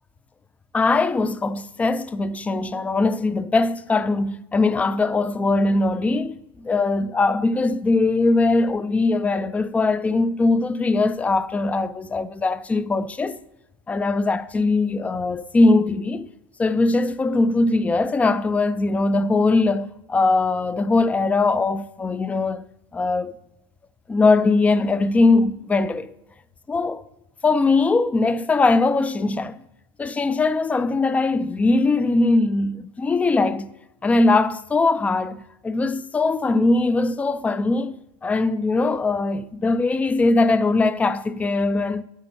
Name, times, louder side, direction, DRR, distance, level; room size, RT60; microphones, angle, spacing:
voice 1, 0.7-13.4 13.9-16.3 16.6-22.6 22.9-23.3 24.1-26.1 26.7-27.1 27.4-29.6 30.0-33.7 34.0-42.0, left 3 dB, 10° left, 0.3 m, -21 dB
9.0 x 4.3 x 6.8 m
supercardioid pair, 135°, 13 cm